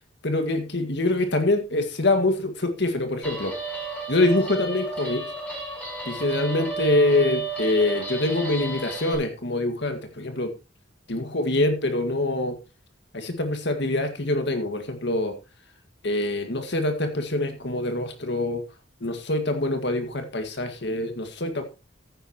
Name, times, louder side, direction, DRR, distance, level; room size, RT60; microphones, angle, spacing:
voice 1, 0.2-3.5 4.1-5.2 6.1-10.5 11.1-12.5 13.1-15.3 16.0-18.6 19.0-21.6, left 2 dB, 65° left, 7 dB, 2.0 m, -25 dB
Guitar, 3.2-9.1, right 3 dB, 10° left, 4.8 m, -32 dB
14.0 x 9.8 x 3.0 m, 0.28 s
head